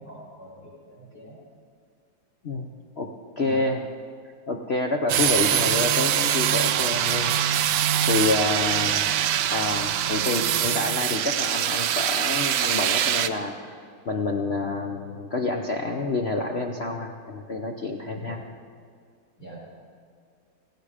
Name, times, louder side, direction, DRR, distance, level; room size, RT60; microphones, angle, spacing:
voice 1, 0.0-1.4 3.4-3.6 8.8-9.0 18.1-18.4 19.4-19.6, right 1 dB, 45° left, -6 dB, 5.5 m, -43 dB
voice 2, 3.4-3.8 4.2-7.3 8.0-9.0 9.5-18.4, left 3 dB, 65° left, 2 dB, 0.6 m, -28 dB
sound 1, 5.1-13.3, right 10 dB, 70° right, 1.0 m, -23 dB
17.0 x 16.0 x 5.0 m, 2.1 s
omnidirectional pair, 2.3 m